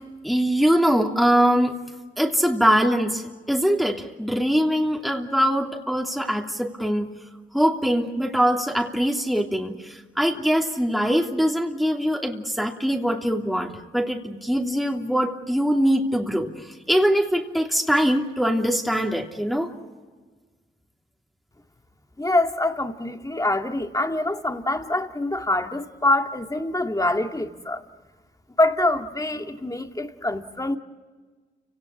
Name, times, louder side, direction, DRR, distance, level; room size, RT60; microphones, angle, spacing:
voice 1, 0.2-1.8 2.2-7.1 7.5-19.7, equal, ahead, 2.9 m, -22 dB
voice 2, 22.2-27.8 28.6-30.8, left 2 dB, 15° left, 2.2 m, -25 dB
29.5 x 18.0 x 8.5 m
supercardioid pair, 45°, 20 cm